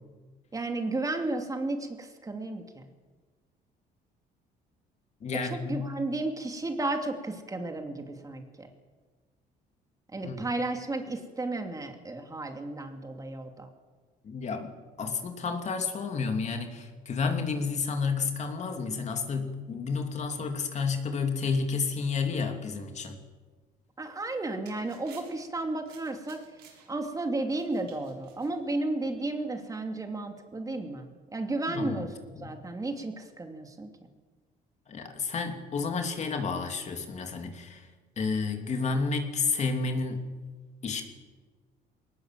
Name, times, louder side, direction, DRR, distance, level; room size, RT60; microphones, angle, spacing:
voice 1, 0.5-2.8 5.4-8.7 10.1-13.7 24.0-26.4 26.9-32.1 32.4-33.9, right 2 dB, 20° right, 4 dB, 2.8 m, -33 dB
voice 2, 5.2-5.9 10.2-10.4 14.2-14.7 15.0-23.2 31.7-32.1 32.4-32.5 34.9-37.9 38.2-40.3 40.8-41.0, left 4 dB, 45° left, 5 dB, 2.9 m, -31 dB
sound 1, 24.1-29.3, right 7 dB, 80° right, 7.3 m, -57 dB
22.0 x 19.5 x 7.7 m, 1.4 s
cardioid pair, 110°, 17 cm